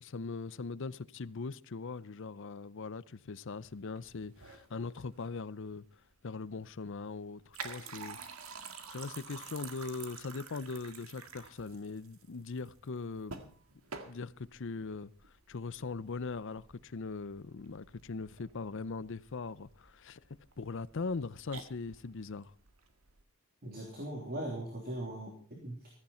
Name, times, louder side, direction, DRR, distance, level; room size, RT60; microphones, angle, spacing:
voice 1, 0.0-5.8 6.2-8.2 8.5-13.4 14.0-15.1 15.5-20.2 20.6-22.5, left 4 dB, 60° left, 0.6 m, -40 dB
sound 1, 3.7-23.2, right 5 dB, 80° right, 1.8 m, -50 dB
voice 2, 23.6-25.9, right 1 dB, 45° right, 3.2 m, -40 dB
15.5 x 14.5 x 4.3 m
head